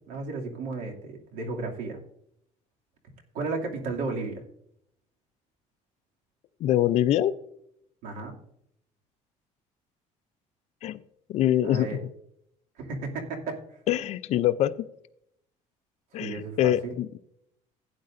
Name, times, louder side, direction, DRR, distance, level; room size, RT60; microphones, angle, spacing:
voice 1, 0.0-2.0 3.3-4.4 8.0-8.4 11.6-12.0 12.8-13.6 16.2-17.0, right 3 dB, 75° right, 1 dB, 2.5 m, -33 dB
voice 2, 6.6-7.3 10.8-11.0 11.3-11.9 13.9-14.7 16.1-17.2, left 12 dB, 50° left, 14 dB, 0.5 m, -24 dB
16.0 x 9.6 x 2.6 m, 0.74 s
cardioid pair, 160°, 14 cm